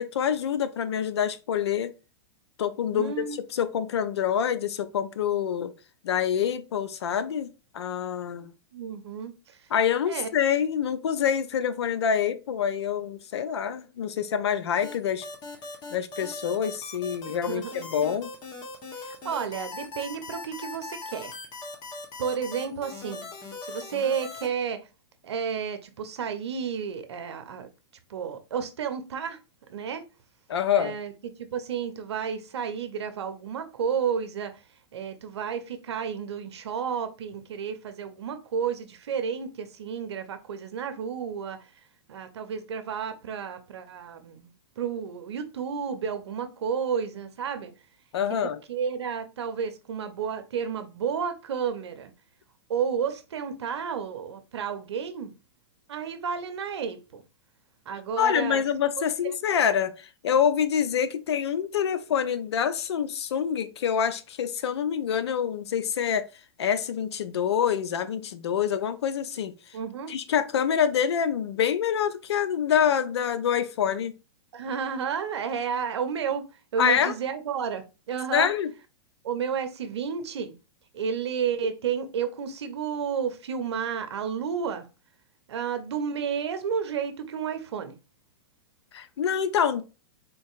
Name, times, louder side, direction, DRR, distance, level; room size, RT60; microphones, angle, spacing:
voice 1, 0.0-1.9 2.6-3.2 3.5-5.7 6.0-7.5 7.7-8.5 9.7-15.3 15.9-18.3 30.5-31.0 48.1-48.6 58.2-66.2 66.6-69.5 70.1-74.1 76.8-77.1 78.3-78.7 88.9-89.8, left 8 dB, 75° left, 0.5 m, -26 dB
voice 2, 2.9-3.4 8.7-9.6 10.1-10.3 17.5-17.7 19.0-21.3 22.2-23.3 23.6-24.8 25.2-27.7 28.1-29.4 29.7-30.0 30.7-31.1 31.4-34.6 34.9-41.7 42.1-47.7 48.4-52.1 52.7-55.3 55.9-57.2 57.9-58.6 69.7-70.1 74.5-76.4 76.7-78.5 79.2-80.5 80.9-84.9 85.5-87.9, right 7 dB, 75° right, 0.7 m, -31 dB
sound 1, 14.8-24.5, left 3 dB, 30° left, 0.9 m, -40 dB
3.8 x 2.6 x 2.4 m
hypercardioid pair, 120°, 14 cm